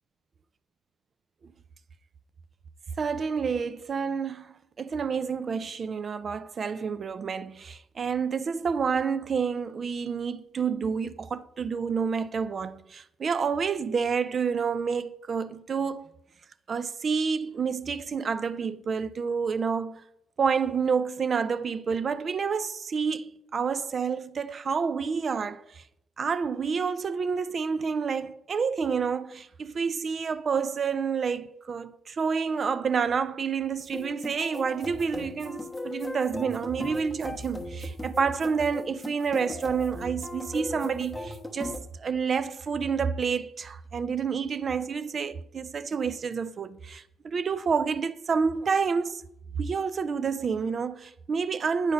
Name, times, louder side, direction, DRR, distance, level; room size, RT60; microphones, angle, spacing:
voice 1, 3.0-4.5 4.8-16.1 16.7-20.0 20.4-25.8 26.2-49.2 49.6-51.9, right 6 dB, 45° right, 0.4 m, -29 dB
sound 1, 33.8-41.8, left 2 dB, 5° left, 1.1 m, -38 dB
8.8 x 4.0 x 5.1 m
cardioid pair, 90°, 0 cm